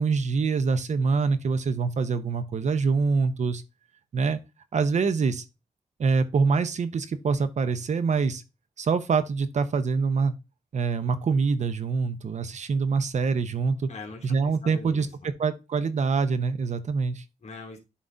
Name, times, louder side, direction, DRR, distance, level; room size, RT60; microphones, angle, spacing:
voice 1, 0.0-3.6 4.1-4.4 4.7-5.4 6.0-8.4 8.8-10.3 10.7-13.9 14.2-15.1 15.4-17.2, right 5 dB, 70° right, 0.8 m, -25 dB
voice 2, 13.9-15.3 17.4-17.8, left 3 dB, 60° left, 2.5 m, -42 dB
11.0 x 3.8 x 2.6 m
wide cardioid pair, 125°, 13 cm